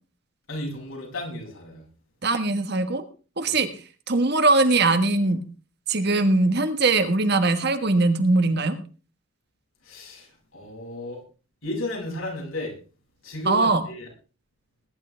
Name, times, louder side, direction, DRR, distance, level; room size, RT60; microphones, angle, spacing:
voice 1, 0.5-1.8 3.4-3.6 9.8-10.3 10.5-11.2 11.6-12.8 13.2-14.1, left 1 dB, 75° left, -1 dB, 7.4 m, -33 dB
voice 2, 2.2-3.0 3.4-3.7 4.1-5.4 5.9-8.8 13.5-13.8, right 3 dB, 50° right, 9 dB, 1.5 m, -21 dB
20.5 x 11.5 x 3.5 m, 0.37 s
head